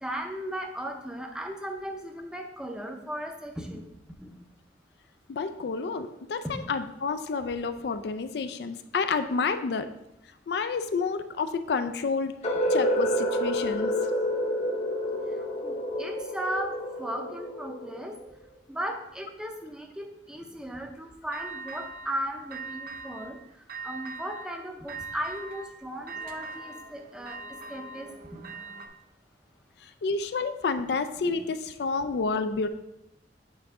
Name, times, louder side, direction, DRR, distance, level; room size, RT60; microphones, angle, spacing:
voice 1, 0.0-4.3 6.4-6.5 15.3-16.7 17.0-18.2 18.7-27.4 27.7-28.4 31.2-31.3, equal, 5° right, 3 dB, 0.6 m, -36 dB
voice 2, 5.3-9.9 10.5-12.4 12.7-13.9 29.8-32.7, left 4 dB, 65° left, 10 dB, 0.4 m, -29 dB
sound 1, 12.4-18.3, equal, 35° left, 0.8 m, -29 dB
sound 2, 21.3-22.2 22.5-23.4 23.7-24.5 24.9-28.9, right 4 dB, 50° right, 0.6 m, -41 dB
8.1 x 3.8 x 3.6 m, 0.86 s
head